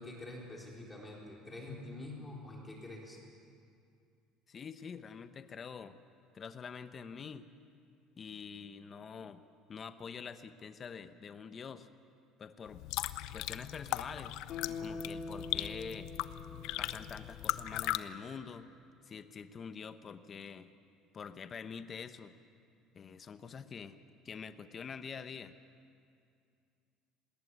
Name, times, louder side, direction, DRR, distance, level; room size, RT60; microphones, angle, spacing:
voice 1, 0.0-3.2, left 2 dB, 10° left, -2 dB, 4.0 m, -46 dB
voice 2, 4.5-6.0 6.3-7.5 8.2-9.4 9.7-11.9 12.4-12.8 13.3-14.3 14.8-16.1 16.8-18.7 19.1-20.7 21.1-22.3 22.9-24.0 24.2-25.5, left 6 dB, 30° left, 11 dB, 0.9 m, -46 dB
sound 1, 12.7-18.0, left 15 dB, 70° left, 0.7 m, -38 dB
Guitar, 14.5-17.7 18.1-18.2, left 4 dB, 50° left, 3.0 m, -45 dB
19.0 x 19.0 x 9.6 m, 2.4 s
cardioid pair, 140°, 0 cm